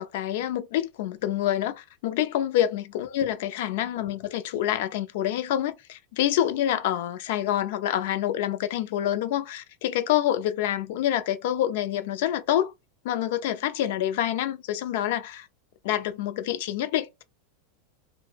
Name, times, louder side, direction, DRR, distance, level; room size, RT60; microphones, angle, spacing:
voice 1, 0.0-12.7 13.0-15.5 15.8-17.2, left 12 dB, 65° left, 0.4 m, -27 dB
2.7 x 2.0 x 3.2 m
hypercardioid pair, 95°, 0 cm